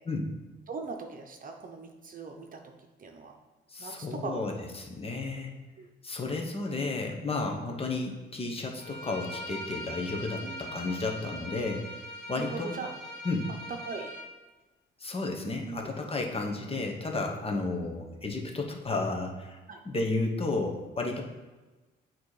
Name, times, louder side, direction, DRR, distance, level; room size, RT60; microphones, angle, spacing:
voice 1, 0.7-2.6 3.0-3.3 3.8-4.5 5.8-5.9 7.6-7.7 10.4-10.6 12.3-12.9 13.9-14.1 15.6-15.9 19.7-19.8, right 4 dB, 45° right, 4 dB, 0.8 m, -40 dB
voice 2, 3.7-5.5 6.0-11.8 12.3-12.7 13.2-13.5 15.0-19.6 19.8-21.2, left 3 dB, 30° left, 2 dB, 1.1 m, -32 dB
Bowed string instrument, 8.8-14.3, equal, 55° left, 1.2 m, -41 dB
8.1 x 3.1 x 4.8 m, 1.2 s
cardioid pair, 90°, 20 cm